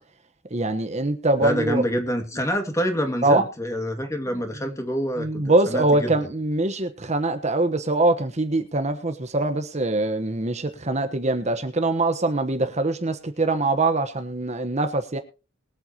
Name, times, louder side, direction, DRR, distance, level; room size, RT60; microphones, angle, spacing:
voice 1, 0.5-1.8 3.2-3.4 5.2-15.2, right 2 dB, 35° right, 1.2 m, -23 dB
voice 2, 1.4-6.1, equal, 15° left, 2.3 m, -27 dB
22.5 x 8.1 x 3.0 m
head